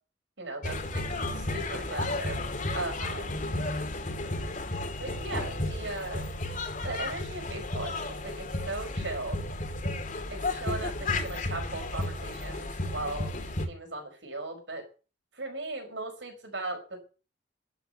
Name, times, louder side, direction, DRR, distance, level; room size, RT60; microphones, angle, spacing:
voice 1, 0.4-2.4 2.7-3.4 5.0-6.3 6.8-9.4 10.3-13.3 13.7-14.9 15.4-17.1, right 2 dB, 85° right, 5 dB, 5.2 m, -38 dB
sound 1, 0.6-13.7, left 2 dB, 45° left, 2.5 m, -33 dB
12.0 x 6.8 x 10.0 m, 0.36 s
head